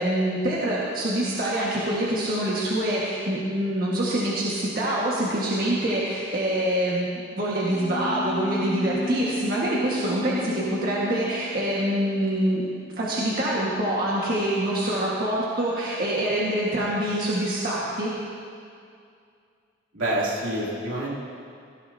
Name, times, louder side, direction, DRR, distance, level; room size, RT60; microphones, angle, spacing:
voice 1, 0.0-7.1 7.4-18.1, right 1 dB, 45° right, -6 dB, 1.8 m, -25 dB
sound 1, 7.6-13.5, left 1 dB, 30° left, 0.8 m, -34 dB
voice 2, 19.9-21.2, right 1 dB, 80° right, -5 dB, 3.1 m, -27 dB
17.0 x 16.5 x 2.9 m, 2.3 s
head